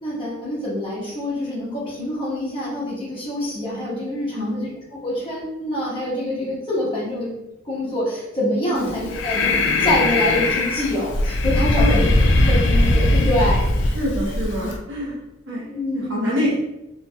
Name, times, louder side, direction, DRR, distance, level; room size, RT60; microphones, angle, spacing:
voice 1, 0.0-4.7 5.0-7.4 7.6-12.1 12.4-13.7 15.7-16.5, left 1 dB, 25° left, -7 dB, 1.0 m, -25 dB
voice 2, 4.3-4.7 8.7-8.9 11.8-12.1 13.9-15.7 15.9-16.5, equal, 70° right, -5 dB, 1.0 m, -26 dB
Breathing, 8.8-14.8, left 2 dB, 65° left, 0.3 m, -20 dB
2.8 x 2.7 x 2.2 m, 0.94 s
head